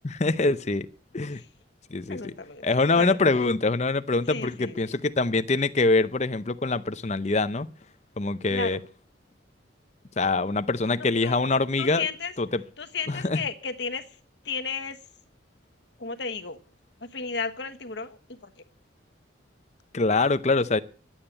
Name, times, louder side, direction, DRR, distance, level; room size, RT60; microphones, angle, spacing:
voice 1, 0.0-0.9 1.1-1.4 1.9-2.2 2.6-7.7 8.2-8.8 10.2-12.0 12.4-12.6 13.2-13.4 19.9-20.8, left 3 dB, 35° left, 0.7 m, -24 dB
voice 2, 2.1-2.6 3.0-3.5 4.3-4.9 8.5-8.9 10.9-11.5 11.8-12.3 12.8-14.2 14.4-15.0 16.0-16.6 17.0-18.5, left 5 dB, 60° left, 1.2 m, -34 dB
11.5 x 8.9 x 8.9 m
head